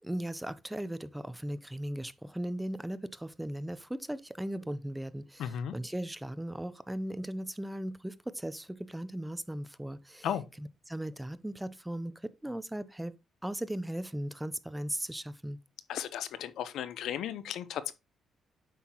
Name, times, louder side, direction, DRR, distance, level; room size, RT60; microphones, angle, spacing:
voice 1, 0.0-10.3 10.6-13.1 13.4-15.6, right 1 dB, 5° right, 0.5 m, -37 dB
voice 2, 5.4-5.7 10.2-10.4 15.9-17.9, left 9 dB, 80° left, 0.7 m, -35 dB
8.3 x 5.8 x 2.9 m
cardioid pair, 90°, 0 cm